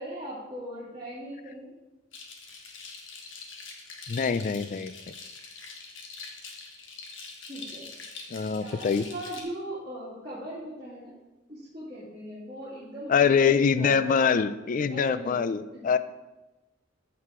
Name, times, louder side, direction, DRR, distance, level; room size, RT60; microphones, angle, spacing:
voice 1, 0.0-1.7 7.5-7.9 8.6-11.1 11.5-14.3 14.9-15.4 15.7-15.9, right 1 dB, 25° right, -12 dB, 2.6 m, -39 dB
sound 1, 2.1-9.4, left 4 dB, 80° left, 1.3 m, -44 dB
voice 2, 4.1-4.9 8.3-9.0 13.1-16.0, left 6 dB, 45° left, 14 dB, 0.4 m, -24 dB
14.0 x 4.8 x 3.7 m, 1.1 s
head